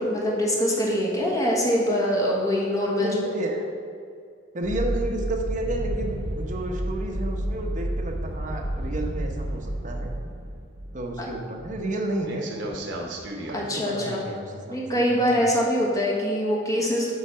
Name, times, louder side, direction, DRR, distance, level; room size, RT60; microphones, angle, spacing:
voice 1, 0.0-3.1 13.5-14.2 14.7-17.1, equal, 20° left, -3 dB, 1.3 m, -24 dB
voice 2, 3.0-3.7 4.5-10.1 10.9-12.4 13.4-15.5, right 2 dB, 40° right, 1 dB, 1.0 m, -31 dB
sound 1, 4.6-11.9 12.2-13.6, right 1 dB, 70° right, 1.0 m, -31 dB
8.1 x 4.0 x 5.6 m, 2.3 s
head